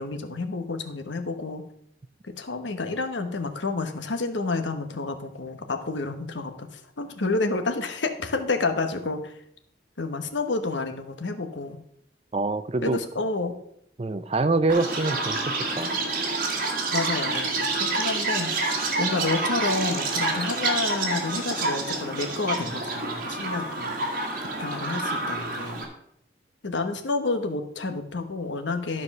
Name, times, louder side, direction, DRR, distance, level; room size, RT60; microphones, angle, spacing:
voice 1, 0.0-1.6 2.2-9.4 10.0-11.8 12.8-13.5 16.9-18.5 19.0-24.0 24.6-25.8 26.6-29.0, left 3 dB, 90° left, 7 dB, 1.1 m, -29 dB
voice 2, 12.3-13.0 14.0-16.0, right 3 dB, 30° right, 12 dB, 0.5 m, -25 dB
Chirp tweet, 14.7-25.8, right 3 dB, 50° right, 1.8 m, -28 dB
12.0 x 4.8 x 5.9 m, 0.73 s
head